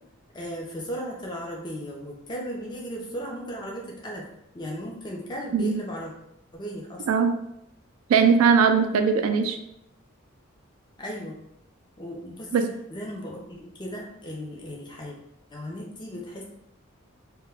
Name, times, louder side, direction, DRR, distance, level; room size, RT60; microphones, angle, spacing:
voice 1, 0.3-4.2 4.5-6.1 6.5-7.1 11.0-11.3 12.0-15.2 15.5-16.4, equal, 20° left, -2 dB, 0.4 m, -36 dB
voice 2, 7.1-7.4 8.1-9.6 12.5-12.6, right 6 dB, 90° right, 8 dB, 0.3 m, -20 dB
2.2 x 2.1 x 3.3 m, 0.80 s
head